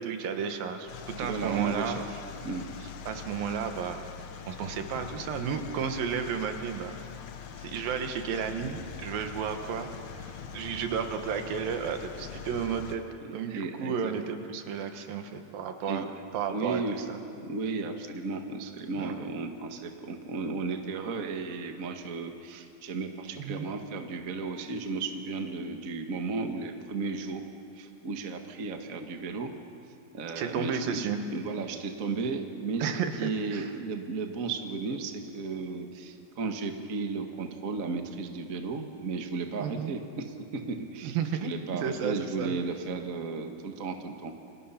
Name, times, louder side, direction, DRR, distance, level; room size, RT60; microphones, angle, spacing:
voice 1, 0.0-2.0 3.1-4.0 4.5-6.9 7.6-13.0 13.3-16.1 16.3-17.2 18.9-19.3 23.4-23.7 30.4-31.2 32.8-33.7 39.6-39.9 41.0-42.6, right 7 dB, 75° right, 6 dB, 3.0 m, -33 dB
sound 1, 0.9-13.0, left 7 dB, 60° left, 2.2 m, -43 dB
voice 2, 1.2-2.6 13.2-14.1 15.9-16.1 16.5-17.0 17.3-27.4 27.7-29.5 30.1-40.3 40.5-41.2 41.4-44.3, right 4 dB, 50° right, 4 dB, 0.9 m, -34 dB
29.0 x 25.0 x 5.8 m, 2.5 s
omnidirectional pair, 4.2 m